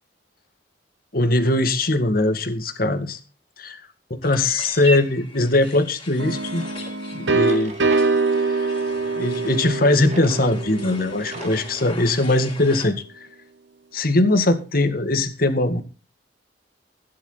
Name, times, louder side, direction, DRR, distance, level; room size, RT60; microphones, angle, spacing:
voice 1, 1.1-3.2 3.6-3.8 4.2-6.7 7.1-7.8 8.4-8.7 9.2-13.3 13.9-15.8, left 2 dB, 55° left, 8 dB, 2.1 m, -21 dB
sound 1, 4.2-12.9, left 1 dB, 30° left, 4.4 m, -38 dB
sound 2, 6.2-11.9, right 3 dB, 85° right, 1.3 m, -24 dB
Drawer open or close, 6.6-6.7 7.2-8.1 9.7-10.5 10.8-10.9 11.2-11.9, right 3 dB, 40° right, 2.0 m, -41 dB
15.5 x 11.0 x 4.0 m, 0.33 s
head